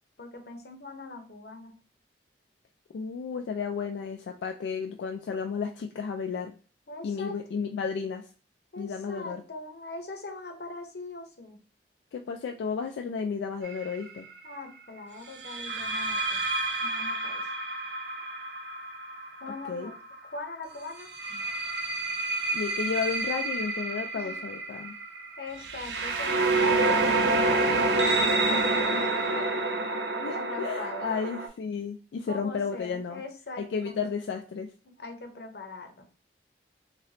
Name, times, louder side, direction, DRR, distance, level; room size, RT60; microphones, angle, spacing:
voice 1, 0.2-1.8 6.9-7.4 8.7-11.6 14.4-16.4 16.8-17.4 19.4-19.9 20.3-21.6 24.1-24.4 25.4-29.5 30.2-31.1 32.3-34.0 34.8-36.0, left 2 dB, 65° left, 4 dB, 0.7 m, -41 dB
voice 2, 2.9-6.5 7.0-8.3 8.8-9.4 12.1-14.3 19.7-19.9 22.5-24.9 30.2-33.2 33.6-34.7, left 6 dB, 85° left, 5 dB, 0.3 m, -33 dB
sound 1, 13.6-13.9 15.4-20.2 21.0-31.5, right 2 dB, 85° right, 0.6 m, -28 dB
3.2 x 2.9 x 2.8 m, 0.37 s
head